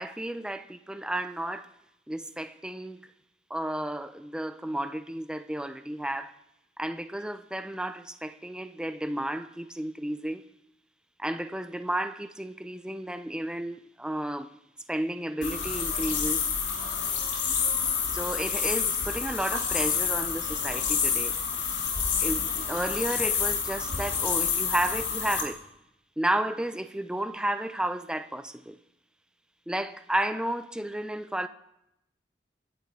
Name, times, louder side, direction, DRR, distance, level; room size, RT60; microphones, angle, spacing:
voice 1, 0.0-1.7 2.1-3.0 3.5-6.3 6.8-10.4 11.2-14.6 14.9-16.4 18.1-21.3 22.2-25.6 26.2-28.8 29.7-31.5, right 1 dB, 5° right, 0.4 m, -32 dB
sound 1, 15.4-25.4, left 6 dB, 80° left, 2.6 m, -28 dB
23.0 x 10.5 x 3.6 m
head